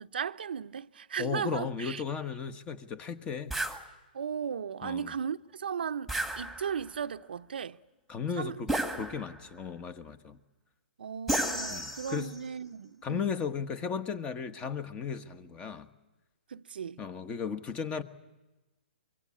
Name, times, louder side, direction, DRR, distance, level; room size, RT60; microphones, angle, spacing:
voice 1, 0.0-2.0 4.1-7.8 8.4-8.6 11.0-13.3 16.5-17.0, right 7 dB, 80° right, 0.8 m, -36 dB
voice 2, 1.2-3.6 4.8-5.1 8.1-8.7 9.0-10.4 11.7-12.3 13.0-15.9 17.0-18.0, left 6 dB, 20° left, 1.3 m, -35 dB
sound 1, 3.5-3.8 6.1-6.9 8.7-9.5 11.3-12.4, right 1 dB, ahead, 1.7 m, -33 dB
24.5 x 23.5 x 8.6 m
hypercardioid pair, 140°, 5 cm